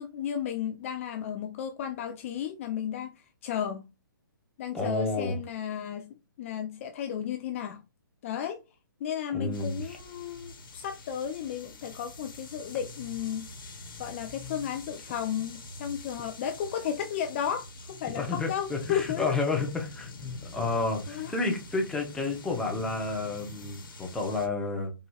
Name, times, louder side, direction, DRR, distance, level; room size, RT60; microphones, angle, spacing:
voice 1, 0.0-3.8 4.6-6.1 6.4-7.8 8.2-8.6 9.0-13.5 14.0-19.3 21.1-21.4, left 9 dB, 35° left, 0.4 m, -33 dB
voice 2, 4.7-5.4 9.3-10.0 18.2-24.9, left 3 dB, 5° left, 0.8 m, -31 dB
sound 1, 9.5-24.5, left 2 dB, 70° left, 1.2 m, -45 dB
4.1 x 2.7 x 2.3 m
figure-of-eight pair, 135°, 12 cm